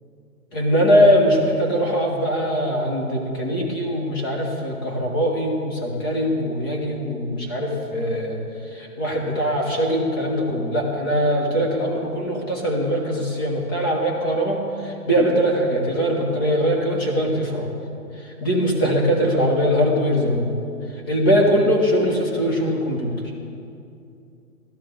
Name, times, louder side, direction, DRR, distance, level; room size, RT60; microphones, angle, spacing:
voice 1, 0.5-8.4 8.6-17.7 18.2-20.5 21.1-23.1, equal, 15° left, -1 dB, 1.0 m, -21 dB
14.0 x 13.0 x 3.8 m, 2.5 s
hypercardioid pair, 165°, 46 cm